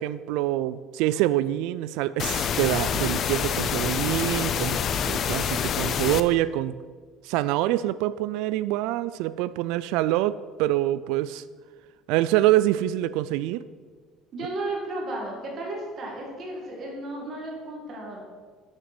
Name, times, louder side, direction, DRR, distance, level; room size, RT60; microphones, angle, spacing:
voice 1, 0.0-4.8 5.1-6.7 7.2-11.4 12.1-13.6, right 14 dB, 85° right, 15 dB, 0.3 m, -25 dB
sound 1, 2.2-6.2, left 8 dB, 35° left, 0.4 m, -26 dB
voice 2, 14.3-18.2, right 2 dB, 35° right, -1 dB, 2.0 m, -34 dB
9.3 x 6.6 x 6.1 m, 1.5 s
cardioid pair, 165°, 0 cm